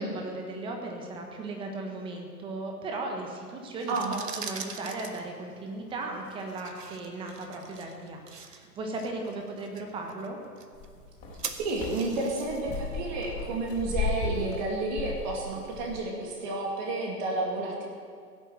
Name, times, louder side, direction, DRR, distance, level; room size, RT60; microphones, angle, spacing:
voice 1, 0.0-10.4, right 2 dB, 10° right, 2 dB, 1.2 m, -37 dB
sound 1, 3.7-14.6, right 5 dB, 80° right, 1.4 m, -44 dB
Footsteps - quiet, 10.7-16.0, left 4 dB, 15° left, 3.4 m, -35 dB
voice 2, 11.6-17.9, right 2 dB, 30° right, 0 dB, 2.3 m, -31 dB
16.0 x 7.9 x 7.9 m, 2.1 s
figure-of-eight pair, 135°, 48 cm